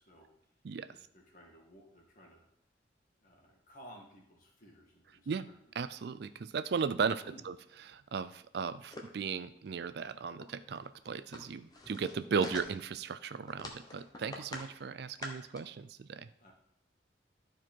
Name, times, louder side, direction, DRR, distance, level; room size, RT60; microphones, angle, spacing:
voice 1, 0.0-0.5 0.9-2.4 3.2-5.5 7.1-7.5 16.4-16.5, equal, 45° left, -1 dB, 2.0 m, -56 dB
voice 2, 5.8-7.5 7.9-16.3, right 5 dB, 60° right, 13 dB, 0.4 m, -36 dB
sound 1, 8.9-9.2 9.7-9.8 10.0-10.1 10.4-10.5 10.8-13.0 13.5-14.7 15.0-15.6, left 1 dB, 20° left, 1.0 m, -45 dB
12.5 x 4.5 x 4.5 m, 0.73 s
head